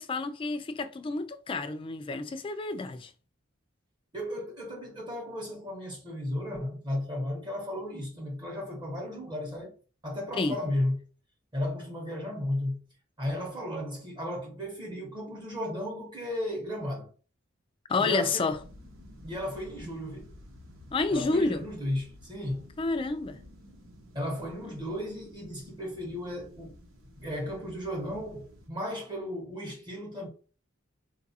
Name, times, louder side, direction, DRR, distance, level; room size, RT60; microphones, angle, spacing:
voice 1, 0.0-3.1 10.4-10.6 17.9-18.6 20.9-21.6 22.8-23.4, left 3 dB, 25° left, 0.3 m, -29 dB
voice 2, 4.1-9.7 10.0-11.1 11.5-12.8 13.2-17.1 18.0-18.5 19.2-20.3 21.1-22.7 24.1-26.7 27.0-30.3, left 1 dB, 25° right, 0.8 m, -34 dB
sound 1, 18.5-28.7, left 1 dB, 90° right, 0.9 m, -52 dB
3.9 x 2.3 x 2.7 m
head